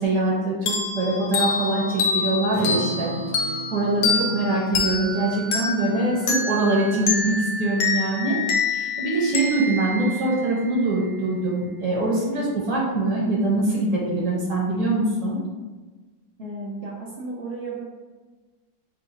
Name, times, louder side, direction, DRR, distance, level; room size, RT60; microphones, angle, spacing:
voice 1, 0.0-3.1 3.7-8.4 8.7-15.4, right 2 dB, 60° right, -4 dB, 1.4 m, -23 dB
sound 1, 0.7-10.9, left 4 dB, 70° left, 1.1 m, -27 dB
Acoustic guitar, 2.5-7.2, right 2 dB, 50° left, 0.5 m, -37 dB
voice 2, 16.4-17.8, right 3 dB, 85° right, -6 dB, 0.5 m, -34 dB
3.8 x 2.2 x 4.3 m, 1.3 s
omnidirectional pair, 2.1 m